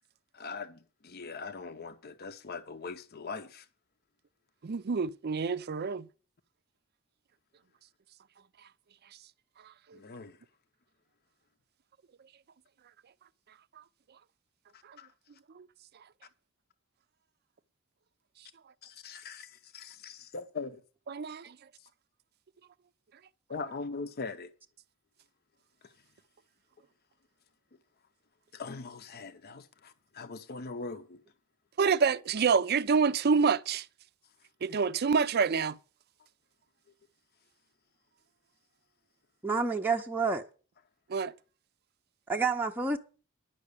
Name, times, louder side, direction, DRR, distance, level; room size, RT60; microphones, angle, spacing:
voice 1, 0.3-3.7 9.9-10.4 14.7-15.1 18.8-20.8 21.8-21.9 23.5-24.5 25.8-25.9 28.5-31.2, left 4 dB, 50° left, 0.7 m, -41 dB
voice 2, 4.6-6.1 9.9-10.0 14.9-15.0 15.5-15.7 21.1-21.6 31.8-33.9 34.6-35.8 41.1-41.3, right 5 dB, 50° right, 0.5 m, -27 dB
voice 3, 39.4-40.4 42.3-43.0, right 4 dB, 10° right, 0.6 m, -29 dB
10.5 x 6.0 x 8.2 m
head